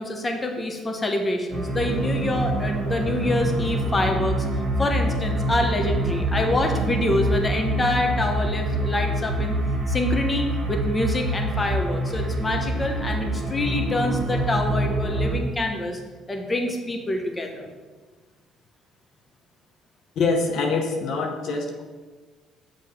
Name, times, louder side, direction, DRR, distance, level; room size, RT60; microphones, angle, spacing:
voice 1, 0.0-4.4 4.8-9.6 9.9-16.0 16.3-17.7, left 1 dB, 25° left, 3 dB, 1.0 m, -26 dB
sound 1, 1.5-15.4, right 1 dB, 45° right, 1.5 m, -26 dB
voice 2, 20.2-21.8, left 4 dB, 70° left, 2 dB, 0.8 m, -24 dB
6.5 x 3.2 x 5.5 m, 1.4 s
supercardioid pair, 65°, 0 cm